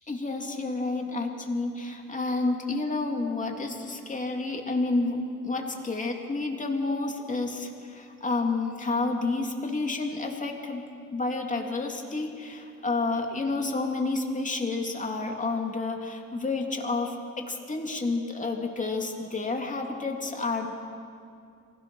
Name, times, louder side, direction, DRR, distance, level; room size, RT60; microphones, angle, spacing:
voice 1, 0.1-10.8 11.1-20.7, left 3 dB, 25° left, 2 dB, 2.9 m, -30 dB
24.5 x 16.5 x 6.4 m, 2.4 s
cardioid pair, 90°, 30 cm